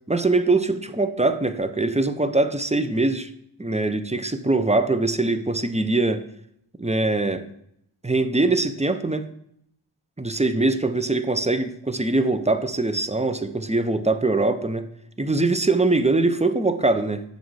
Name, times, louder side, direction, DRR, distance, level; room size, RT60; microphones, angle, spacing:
voice 1, 0.1-3.3 3.6-6.2 6.8-7.4 8.0-9.3 10.2-14.9 15.2-17.2, right 2 dB, 15° right, 10 dB, 0.7 m, -22 dB
8.4 x 6.3 x 4.7 m, 0.73 s
wide cardioid pair, 40°, 50 cm